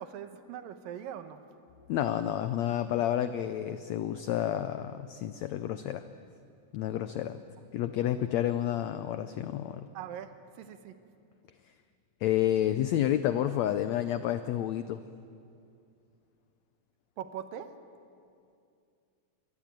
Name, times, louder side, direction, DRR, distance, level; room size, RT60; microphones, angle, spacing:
voice 1, 0.0-1.4 9.9-10.9 17.2-17.7, right 9 dB, 80° right, 9 dB, 2.8 m, -41 dB
voice 2, 1.9-6.0 6.7-7.4 7.7-9.9 12.2-15.0, left 11 dB, 90° left, 11 dB, 1.5 m, -30 dB
24.0 x 19.5 x 9.1 m, 2.5 s
omnidirectional pair, 4.0 m